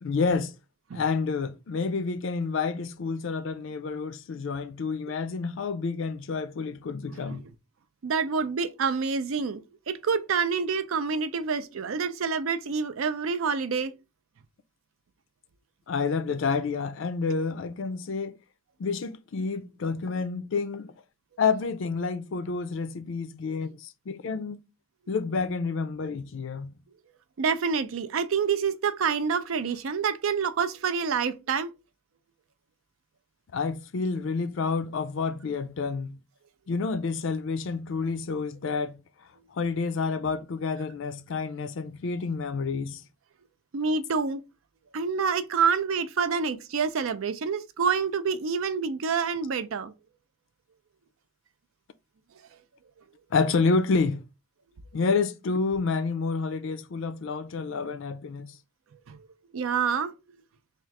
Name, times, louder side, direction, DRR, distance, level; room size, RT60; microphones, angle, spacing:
voice 1, 0.0-0.5 0.9-7.5 15.9-18.4 18.8-20.9 21.4-24.6 25.1-26.7 33.5-36.2 36.7-39.0 39.5-43.0 53.3-54.2 54.9-58.5, left 4 dB, 65° left, 0.4 m, -29 dB
voice 2, 7.1-7.4 8.0-13.9 27.4-31.7 43.7-44.4 44.9-49.9 59.1-59.2 59.5-60.1, right 5 dB, 75° right, 0.4 m, -27 dB
3.7 x 2.4 x 4.5 m
head